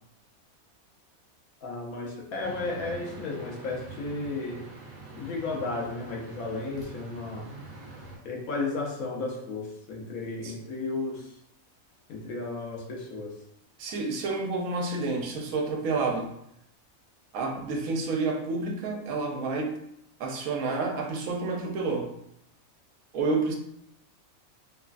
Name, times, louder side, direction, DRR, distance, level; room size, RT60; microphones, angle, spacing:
voice 1, 1.6-4.6 5.1-7.5 8.2-11.3 12.1-13.3, left 3 dB, 85° left, -1 dB, 1.2 m, -34 dB
sound 1, 2.4-8.2, right 2 dB, 50° right, 0.8 m, -44 dB
voice 2, 13.8-16.3 17.3-19.7 20.2-22.1 23.1-23.6, right 3 dB, 80° right, 2 dB, 1.0 m, -29 dB
3.0 x 2.2 x 2.4 m, 0.77 s
omnidirectional pair, 1.5 m